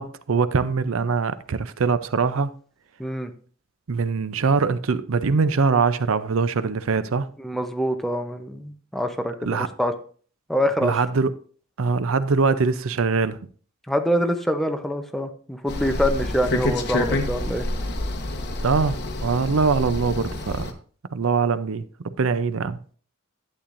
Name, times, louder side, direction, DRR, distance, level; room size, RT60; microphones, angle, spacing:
voice 1, 0.0-2.5 3.9-7.3 9.4-9.7 10.8-11.3 11.8-13.4 18.6-20.7 21.1-22.8, right 4 dB, 70° right, 0.5 m, -23 dB
voice 2, 3.0-3.3 7.4-9.9 10.5-10.9 13.9-17.6, equal, ahead, 0.7 m, -25 dB
sound 1, 15.7-20.7, left 1 dB, 55° left, 1.2 m, -27 dB
11.5 x 8.6 x 2.6 m
head